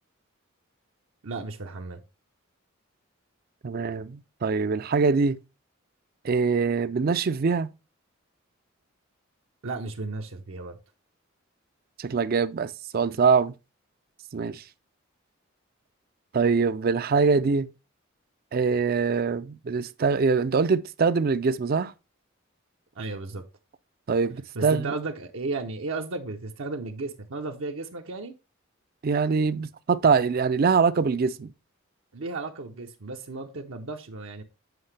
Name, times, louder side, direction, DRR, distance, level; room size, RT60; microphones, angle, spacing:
voice 1, 1.2-2.0 9.6-10.8 23.0-23.4 24.5-28.3 32.1-34.4, right 3 dB, 75° right, 0.7 m, -34 dB
voice 2, 3.6-5.4 6.2-7.7 12.0-13.5 14.3-14.6 16.3-17.7 18.5-21.9 24.1-24.9 29.0-31.5, right 5 dB, 45° right, 0.4 m, -23 dB
7.7 x 5.7 x 3.3 m
head